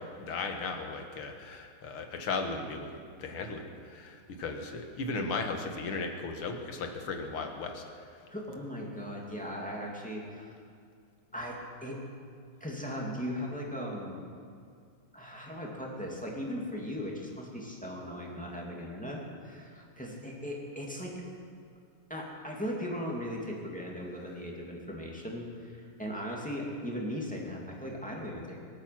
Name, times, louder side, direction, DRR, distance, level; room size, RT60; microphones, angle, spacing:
voice 1, 0.0-8.1, left 3 dB, 85° left, 4 dB, 2.3 m, -36 dB
voice 2, 8.3-10.5 11.3-12.0 12.6-14.2 15.1-21.2 22.1-28.6, equal, 5° left, -3 dB, 2.4 m, -38 dB
25.0 x 8.9 x 6.0 m, 2.3 s
omnidirectional pair, 2.3 m